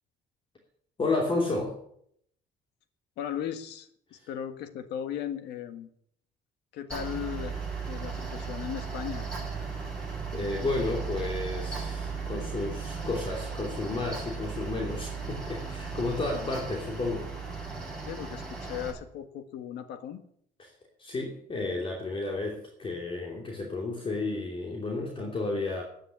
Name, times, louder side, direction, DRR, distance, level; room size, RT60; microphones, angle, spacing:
voice 1, 1.0-1.8 4.1-4.3 10.3-17.3 20.6-20.7 21.0-25.8, left 3 dB, 30° left, 0 dB, 2.8 m, -32 dB
voice 2, 3.2-5.9 6.7-7.6 7.9-9.3 16.3-16.5 18.1-20.2, left 9 dB, 80° left, 9 dB, 1.6 m, -37 dB
Mechanical fan, 6.9-18.9, right 5 dB, 5° left, 6.9 m, -36 dB
10.0 x 9.6 x 9.8 m, 0.69 s
cardioid pair, 110°, 17 cm